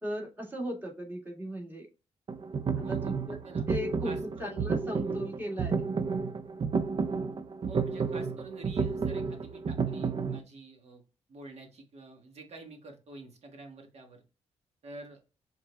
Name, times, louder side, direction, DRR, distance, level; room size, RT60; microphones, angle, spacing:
voice 1, 0.0-1.9 2.8-3.4 3.7-4.1 4.4-5.8, equal, 15° right, -1 dB, 1.8 m, -37 dB
sound 1, 2.3-10.4, right 5 dB, 45° right, 0.4 m, -31 dB
voice 2, 2.8-3.6 4.0-4.7 7.7-11.0 11.3-14.2 14.8-15.2, right 3 dB, 65° right, 3 dB, 1.4 m, -48 dB
6.1 x 3.6 x 2.3 m, 0.32 s
cardioid pair, 95°, 12 cm